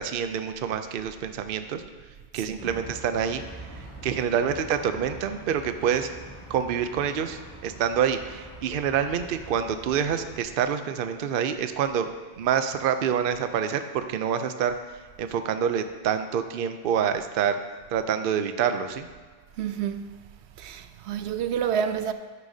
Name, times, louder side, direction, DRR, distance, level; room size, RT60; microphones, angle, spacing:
voice 1, 0.0-1.8 2.3-3.4 4.0-6.1 6.5-12.1 12.4-14.7 15.2-17.5 17.9-19.1, right 8 dB, 60° right, 0.7 m, -27 dB
voice 2, 2.3-2.8 19.6-20.1 20.6-22.1, right 8 dB, 90° right, 0.9 m, -29 dB
sound 1, 2.6-10.4, right 1 dB, 15° left, 2.3 m, -44 dB
11.0 x 9.7 x 2.7 m
omnidirectional pair, 1.1 m